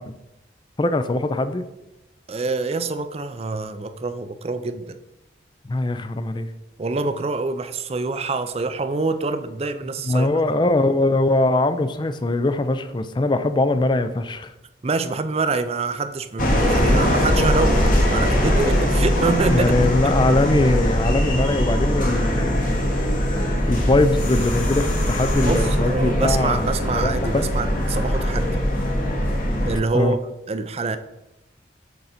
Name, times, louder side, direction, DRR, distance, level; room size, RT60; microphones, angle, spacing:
voice 1, 0.8-1.6 5.7-6.5 10.0-14.5 19.5-23.0 23.5-26.7 26.9-27.5 29.9-30.2, left 2 dB, 25° left, 11 dB, 0.4 m, -21 dB
voice 2, 2.3-5.0 6.8-10.3 14.8-19.7 20.0-20.1 25.5-28.6 29.6-30.2 30.5-31.0, right 3 dB, 35° right, 10 dB, 0.4 m, -25 dB
sound 1, 16.4-29.8, equal, 45° left, 1.3 m, -21 dB
6.7 x 3.9 x 5.7 m, 0.91 s
head